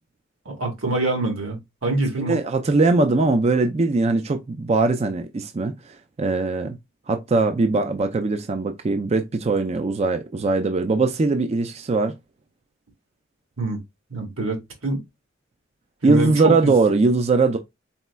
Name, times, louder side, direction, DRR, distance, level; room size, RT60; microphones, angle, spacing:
voice 1, 0.4-2.4 13.6-13.8 14.1-15.0 16.0-16.7, right 2 dB, 90° right, 1.6 m, -25 dB
voice 2, 2.2-6.7 7.1-12.2 16.0-17.6, right 3 dB, 30° right, 0.4 m, -21 dB
4.2 x 4.1 x 2.2 m
head